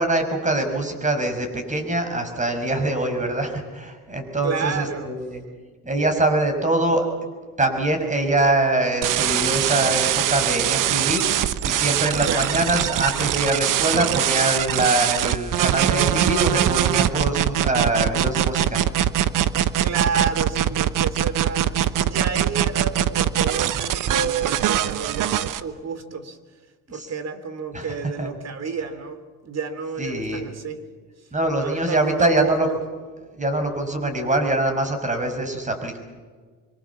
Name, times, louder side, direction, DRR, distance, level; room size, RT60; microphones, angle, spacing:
voice 1, 0.0-5.4 5.8-7.0 7.6-18.8 23.7-23.9 26.9-27.1 27.7-27.9 28.2-28.3 30.0-30.5 31.3-32.7 33.4-36.0, right 2 dB, 20° right, 6 dB, 6.1 m, -23 dB
voice 2, 4.4-5.1 12.2-12.6 19.8-26.4 26.9-30.8 31.6-32.7, right 5 dB, 50° right, 11 dB, 3.1 m, -30 dB
sound 1, 9.0-25.6, right 11 dB, 65° right, 1.1 m, -22 dB
25.5 x 24.5 x 7.2 m, 1.5 s
cardioid pair, 95°, 34 cm